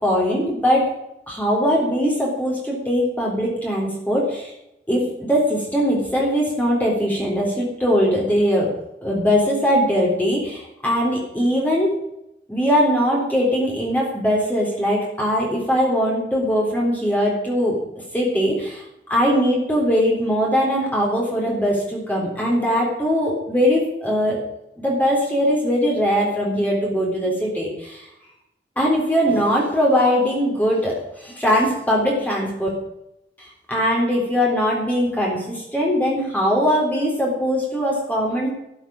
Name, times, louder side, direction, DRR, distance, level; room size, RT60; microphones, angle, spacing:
voice 1, 0.0-0.9 1.3-4.5 4.9-8.7 9.0-11.9 12.5-17.8 18.1-18.8 19.1-24.4 24.8-28.0 28.8-32.7 33.4-38.5, equal, 10° left, -3 dB, 3.8 m, -21 dB
12.5 x 8.1 x 8.8 m, 0.86 s
head